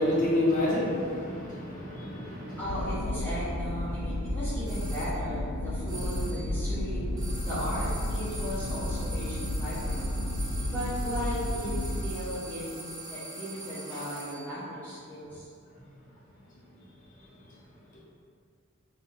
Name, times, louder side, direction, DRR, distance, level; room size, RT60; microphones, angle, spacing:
voice 1, 0.0-2.6 5.8-5.9, left 1 dB, 40° left, -7 dB, 1.0 m, -28 dB
sound 1, 2.6-12.1, left 1 dB, 70° left, 0.6 m, -32 dB
voice 2, 2.6-10.1 10.7-15.5, equal, 10° left, -12 dB, 0.8 m, -36 dB
sound 2, 4.7-5.2 5.9-6.5 7.2-14.5, right 2 dB, 20° right, 0.6 m, -43 dB
2.9 x 2.8 x 4.4 m, 2.2 s
head